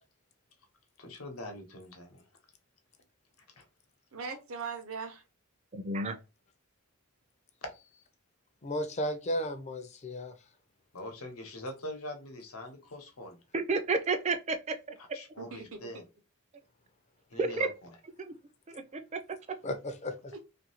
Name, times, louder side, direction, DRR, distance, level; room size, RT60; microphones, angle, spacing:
voice 1, 1.0-2.3 3.6-3.7 10.9-13.4 15.1-16.0 17.3-17.9, left 1 dB, 90° left, 0.9 m, -43 dB
voice 2, 4.1-5.2 15.4-16.1 20.3-20.4, right 5 dB, 75° right, 0.7 m, -40 dB
voice 3, 5.9-6.2 13.5-14.6 17.4-17.7 18.2-18.3 18.7-19.2, right 3 dB, 30° right, 0.4 m, -30 dB
voice 4, 8.6-10.3 19.6-20.3, equal, 30° left, 0.5 m, -34 dB
2.7 x 2.5 x 2.8 m
head